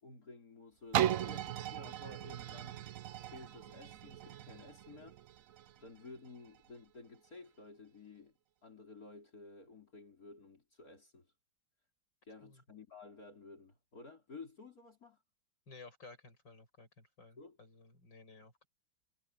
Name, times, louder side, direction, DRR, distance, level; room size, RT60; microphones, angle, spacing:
voice 1, 0.0-2.8 3.2-5.2 5.8-8.3 8.6-11.3 12.2-15.2 17.4-17.6, left 3 dB, 50° left, 4.5 m, -53 dB
sound 1, 0.9-6.7 7.2-7.3, right 11 dB, 65° right, 0.8 m, -38 dB
voice 2, 15.7-18.7, left 3 dB, 80° left, 7.8 m, -56 dB
omnidirectional pair, 2.0 m